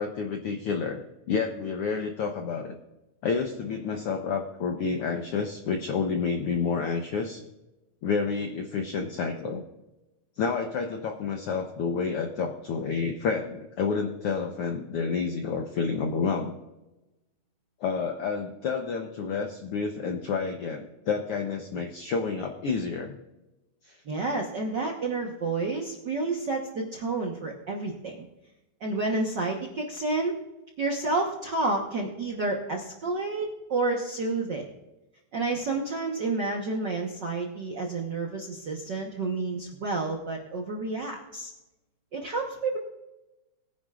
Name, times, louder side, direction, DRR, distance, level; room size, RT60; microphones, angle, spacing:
voice 1, 0.0-2.8 3.2-7.4 8.0-9.6 10.4-16.5 17.8-23.2 23.8-24.0, left 5 dB, 80° left, 4 dB, 1.3 m, -29 dB
voice 2, 24.0-28.3 28.8-30.3 30.8-34.7 35.3-41.5 42.1-42.8, right 3 dB, 60° right, 0 dB, 1.1 m, -30 dB
21.0 x 10.0 x 2.4 m, 1.0 s
omnidirectional pair, 3.6 m